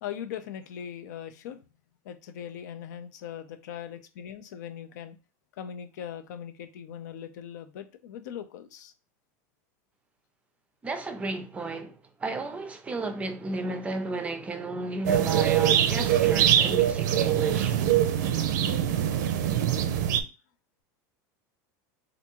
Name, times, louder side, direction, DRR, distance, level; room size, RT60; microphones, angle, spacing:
voice 1, 0.0-1.6 2.0-5.2 5.6-8.9 18.0-18.3, left 9 dB, 85° left, 0.6 m, -40 dB
voice 2, 10.8-17.7, right 3 dB, 15° right, 0.4 m, -33 dB
sound 1, 15.0-20.2, right 10 dB, 90° right, 0.5 m, -23 dB
3.4 x 2.6 x 2.9 m
supercardioid pair, 150°, 9 cm